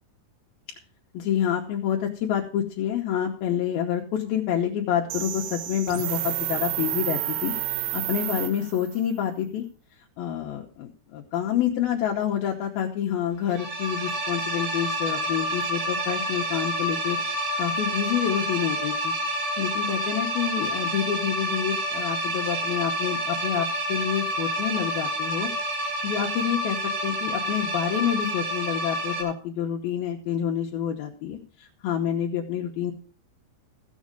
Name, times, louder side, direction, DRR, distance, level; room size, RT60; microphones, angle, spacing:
voice 1, 1.1-7.5 7.9-9.6 10.2-19.1 19.6-25.5 25.8-26.8 27.0-32.9, left 9 dB, 75° left, 0 dB, 2.6 m, -28 dB
sound 1, 5.1-9.0, right 14 dB, 85° right, 2.9 m, -30 dB
sound 2, 13.5-29.2, equal, 55° right, 3.7 m, -28 dB
14.5 x 7.4 x 5.2 m, 0.40 s
omnidirectional pair, 4.8 m